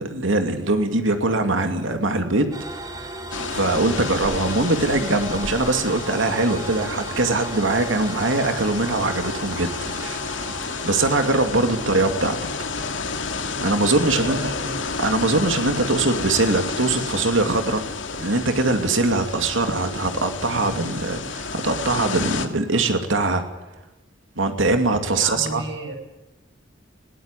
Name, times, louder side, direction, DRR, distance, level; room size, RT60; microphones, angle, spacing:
voice 1, 0.0-3.1 3.5-12.4 13.6-14.4 15.0-17.8 18.2-23.4 24.4-25.6, right 2 dB, 85° right, 6 dB, 2.6 m, -22 dB
sound 1, 2.5-19.6, right 2 dB, 20° right, 2.6 m, -39 dB
sound 2, 3.3-22.5, left 4 dB, 75° left, 2.3 m, -31 dB
voice 2, 14.1-14.8 25.1-26.0, right 1 dB, 65° right, 4 dB, 7.1 m, -32 dB
21.5 x 18.0 x 9.9 m, 0.99 s
head